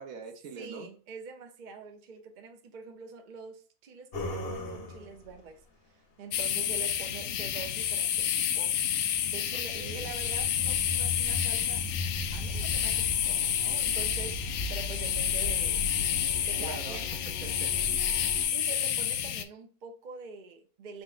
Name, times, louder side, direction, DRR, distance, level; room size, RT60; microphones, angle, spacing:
voice 1, 0.0-0.9 9.5-10.1 16.6-17.0 17.4-18.0 18.4-18.5, right 5 dB, 65° right, 1.3 m, -43 dB
voice 2, 0.5-5.6 6.2-8.8 9.2-11.9 12.3-17.2 18.5-21.0, right 5 dB, 45° right, 0.6 m, -45 dB
sound 1, 4.1-5.3 9.0-18.4, left 2 dB, 45° left, 1.1 m, -37 dB
sound 2, 6.3-19.4, left 10 dB, 70° left, 0.9 m, -30 dB
4.5 x 4.1 x 2.4 m
omnidirectional pair, 1.6 m